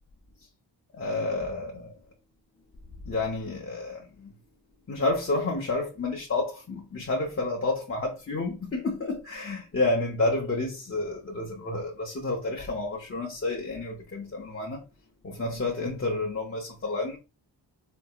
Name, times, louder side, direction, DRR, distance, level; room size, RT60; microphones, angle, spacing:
voice 1, 0.9-2.0 3.1-4.3 4.9-14.8 15.2-17.2, left 2 dB, 30° left, 0.6 m, -30 dB
4.4 x 2.8 x 2.2 m
wide cardioid pair, 120°, 43 cm